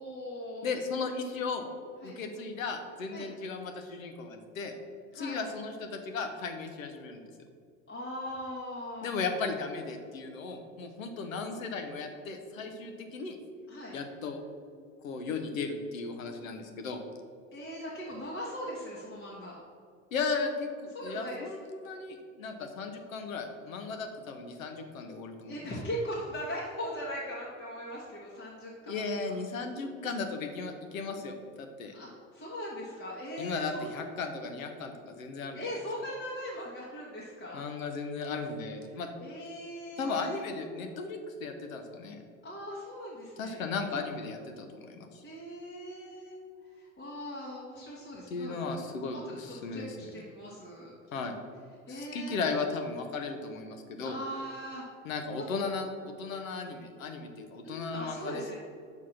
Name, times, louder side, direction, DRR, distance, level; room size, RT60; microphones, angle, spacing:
voice 1, 0.0-0.7 2.0-2.2 3.1-3.3 5.1-5.5 7.9-9.1 13.7-14.0 17.5-19.6 20.9-21.5 25.5-29.0 29.2-29.3 31.9-33.9 35.5-37.6 38.9-40.4 42.4-43.7 45.2-46.4 46.6-48.7 49.1-50.9 51.9-52.6 54.0-54.8 57.6-58.6, equal, 30° left, -5 dB, 1.6 m, -40 dB
voice 2, 0.6-1.7 2.0-4.8 5.1-7.2 9.0-13.4 13.9-14.4 15.0-17.0 20.1-25.6 28.9-31.9 33.4-35.6 37.5-39.1 40.0-42.2 43.4-45.2 48.3-50.1 51.1-51.3 51.9-54.2 55.0-58.4, left 4 dB, 80° left, 6 dB, 1.0 m, -36 dB
5.8 x 4.6 x 5.8 m, 2.2 s
hypercardioid pair, 75°, 40 cm